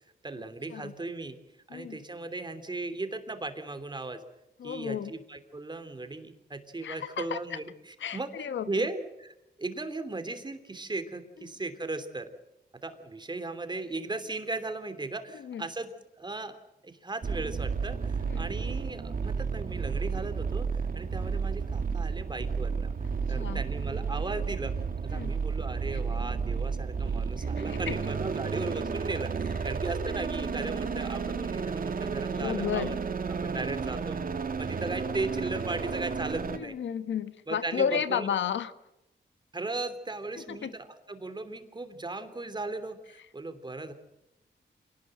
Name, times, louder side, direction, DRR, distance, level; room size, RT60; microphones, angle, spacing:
voice 1, 0.2-1.4 1.7-4.2 4.6-12.3 12.8-15.9 16.1-16.6 16.8-22.9 23.3-33.0 33.4-34.2 34.6-36.7 37.5-38.3 39.5-43.9, right 2 dB, 25° right, 8 dB, 3.0 m, -37 dB
voice 2, 4.6-5.1 6.8-7.4 8.0-8.9 15.4-15.6 18.3-18.5 23.3-23.6 25.1-25.3 26.2-26.3 27.4-28.0 32.3-32.9 36.5-38.7 40.4-40.7, left 8 dB, 85° left, 12 dB, 1.2 m, -33 dB
sound 1, 17.2-36.6, right 5 dB, 50° right, 1.8 m, -32 dB
27.0 x 19.0 x 7.8 m, 0.91 s
wide cardioid pair, 115°, 19 cm